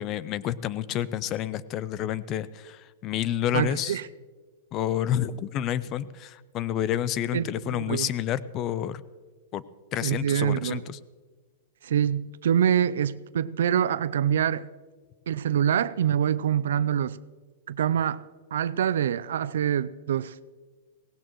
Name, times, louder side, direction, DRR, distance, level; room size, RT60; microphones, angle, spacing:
voice 1, 0.0-4.0 4.7-9.0 9.5-9.6 9.9-11.0, left 11 dB, 30° left, 0.5 m, -29 dB
voice 2, 3.5-4.0 7.3-8.1 10.0-10.8 11.8-14.7 15.3-17.2 17.7-18.2 18.5-20.3, right 9 dB, 80° right, 0.4 m, -25 dB
17.5 x 16.5 x 3.1 m
hypercardioid pair, 145°, 0 cm